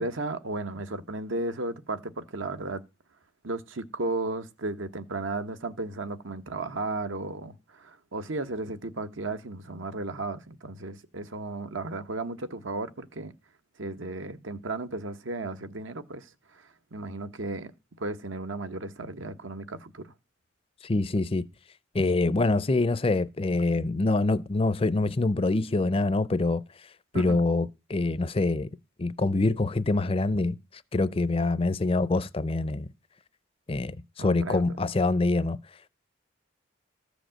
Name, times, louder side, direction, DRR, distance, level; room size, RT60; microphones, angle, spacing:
voice 1, 0.0-2.8 3.4-13.3 13.8-17.7 18.0-20.1 27.1-27.4 34.2-34.8, right 2 dB, 80° right, 1.1 m, -34 dB
voice 2, 20.8-21.4 21.9-26.6 27.1-28.7 29.0-32.9 33.7-35.6, left 2 dB, 30° left, 0.5 m, -25 dB
14.0 x 5.1 x 7.5 m
head